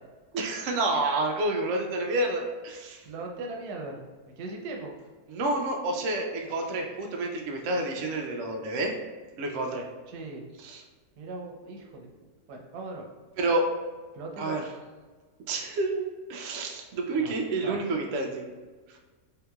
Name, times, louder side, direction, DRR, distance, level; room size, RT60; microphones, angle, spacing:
voice 1, 0.3-3.0 5.3-8.9 9.4-9.8 10.6-10.8 13.4-13.6 14.4-14.7 15.5-18.5, right 2 dB, 70° right, 1 dB, 0.8 m, -29 dB
voice 2, 3.0-4.0 4.4-4.9 10.1-10.4 11.2-12.1 12.5-13.1 14.1-14.6 17.2-17.3 17.6-17.8, right 3 dB, 85° right, 1 dB, 1.2 m, -38 dB
3.5 x 2.8 x 2.3 m, 1.3 s
omnidirectional pair, 1.6 m